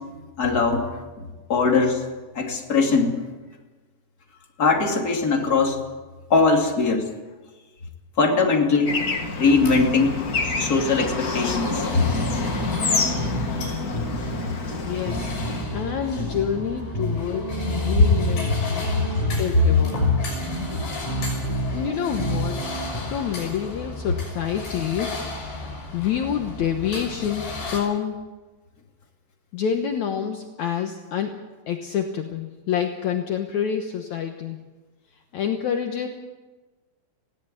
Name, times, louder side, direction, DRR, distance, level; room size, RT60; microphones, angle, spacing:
voice 1, 0.4-0.9 1.2-2.0 2.3-3.2 4.6-5.8 6.3-7.1 8.2-9.0 9.4-10.1 10.6-12.0 18.0-18.1 19.0-19.2, left 4 dB, 25° left, 1 dB, 2.7 m, -20 dB
Bird / Traffic noise roadway noise, 8.9-15.6, left 4 dB, 50° left, 1.0 m, -28 dB
sound 1, 9.5-27.8, left 2 dB, 85° left, 8.3 m, -33 dB
sound 2, 11.6-23.0, right 1 dB, 35° right, 3.5 m, -31 dB
voice 2, 14.8-15.4 15.7-20.1 21.7-22.7 23.0-25.2 25.9-28.3 29.5-31.4 31.7-34.6 35.3-36.1, left 8 dB, 70° left, 4 dB, 1.9 m, -28 dB
20.5 x 17.0 x 8.4 m, 1.2 s
omnidirectional pair, 4.9 m